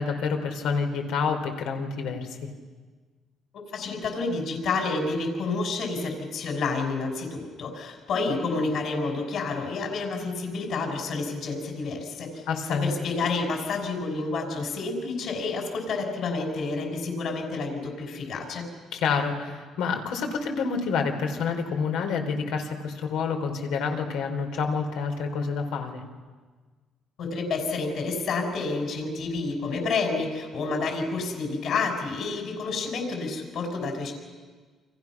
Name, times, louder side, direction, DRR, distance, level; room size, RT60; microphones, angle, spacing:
voice 1, 0.0-2.5 12.5-12.9 18.9-26.0, left 5 dB, 80° left, 4 dB, 3.7 m, -28 dB
voice 2, 3.7-18.7 27.2-34.1, left 3 dB, 55° left, 2 dB, 5.4 m, -29 dB
29.5 x 26.0 x 6.0 m, 1.4 s
cardioid pair, 165°, 0 cm